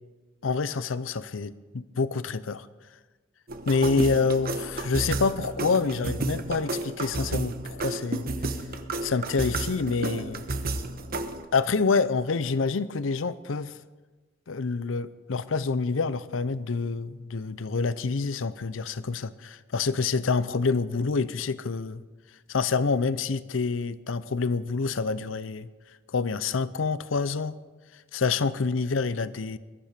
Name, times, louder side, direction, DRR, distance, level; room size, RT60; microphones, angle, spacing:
voice 1, 0.4-2.7 3.7-8.3 9.0-10.4 11.5-13.8 14.5-22.0 22.5-25.7 26.1-27.5 28.1-29.6, left 4 dB, 85° left, 16 dB, 0.6 m, -27 dB
sound 1, 3.5-11.4, right 2 dB, 50° right, 1.1 m, -32 dB
21.5 x 13.0 x 5.1 m, 1.3 s
head